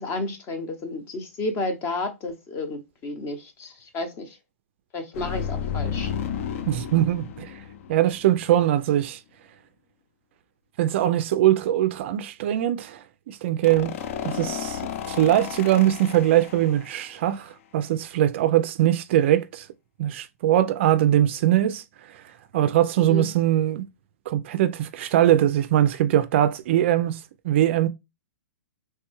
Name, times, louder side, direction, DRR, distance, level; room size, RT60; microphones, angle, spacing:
voice 1, 0.0-4.4 4.9-6.1 23.0-23.3, left 2 dB, 25° left, 0.7 m, -31 dB
sound 1, 5.1-8.6 13.6-17.2, left 8 dB, 50° left, 0.4 m, -33 dB
voice 2, 6.7-7.5 7.9-9.2 10.8-13.9 14.2-19.7 20.0-21.8 22.5-23.8 24.3-27.2 27.4-27.9, right 12 dB, 45° right, 0.3 m, -21 dB
3.2 x 2.2 x 3.0 m
hypercardioid pair, 140°, 9 cm